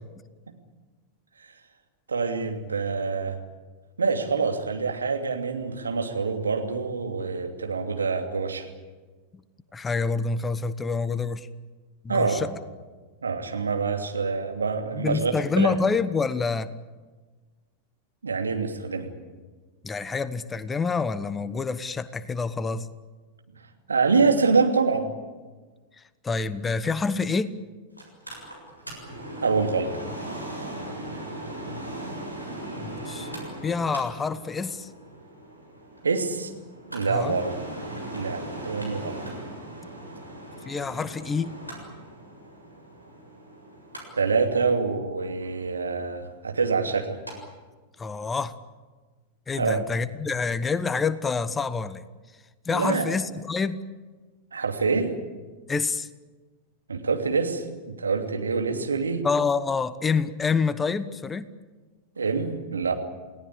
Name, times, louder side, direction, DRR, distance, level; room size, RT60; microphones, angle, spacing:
voice 1, 2.1-3.4 4.0-8.7 12.1-12.5 13.2-15.7 18.2-19.1 23.9-25.1 29.4-29.9 36.0-36.5 36.9-37.5 38.1-39.2 44.1-47.2 49.6-49.8 52.7-53.1 54.5-55.1 56.9-59.2 62.2-62.9, right 4 dB, 75° right, 4 dB, 2.8 m, -26 dB
voice 2, 9.7-11.5 12.0-12.5 15.0-16.7 19.8-22.9 26.2-27.5 32.8-33.3 33.6-34.9 37.1-37.4 40.7-41.6 48.0-48.5 49.5-52.0 52.7-53.8 55.7-56.1 59.2-61.5, left 4 dB, 15° left, 15 dB, 1.1 m, -27 dB
Mechanical fan, 28.0-47.3 47.7-47.8, right 1 dB, 90° right, 7.3 m, -39 dB
29.0 x 18.5 x 8.6 m, 1.3 s
figure-of-eight pair, 90°, 0 cm